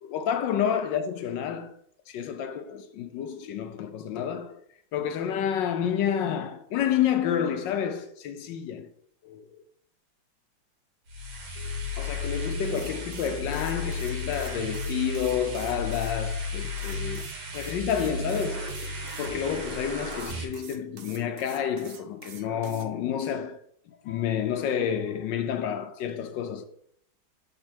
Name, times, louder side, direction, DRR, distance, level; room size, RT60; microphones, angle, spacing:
voice 1, 0.0-1.7 2.1-4.6 4.9-8.9 9.2-9.6 11.6-17.3 17.5-23.6 23.9-26.6, left 8 dB, 75° left, 1.1 m, -29 dB
sound 1, 11.1-20.4, left 2 dB, 85° right, 2.2 m, -34 dB
sound 2, 12.6-16.2 16.8-19.3 20.1-22.9, right 7 dB, 65° right, 0.8 m, -48 dB
7.5 x 3.8 x 4.4 m
omnidirectional pair, 2.2 m